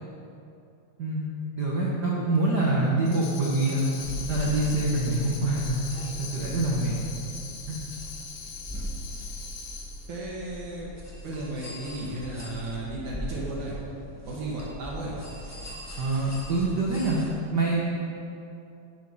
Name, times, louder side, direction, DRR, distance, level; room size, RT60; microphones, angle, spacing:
voice 1, 1.5-3.9 4.3-5.8 6.2-7.0 7.7-7.8 16.0-17.2 17.5-18.1, right 2 dB, 75° right, -5 dB, 0.9 m, -25 dB
Tambourine, 3.1-10.1, left 5 dB, 75° left, 2.7 m, -41 dB
sound 1, 4.0-17.3, equal, 15° left, 0.6 m, -40 dB
voice 2, 10.1-10.9 11.2-13.8 14.3-15.2, right 2 dB, 60° right, -5 dB, 3.1 m, -34 dB
11.5 x 7.5 x 5.7 m, 2.7 s
omnidirectional pair, 4.0 m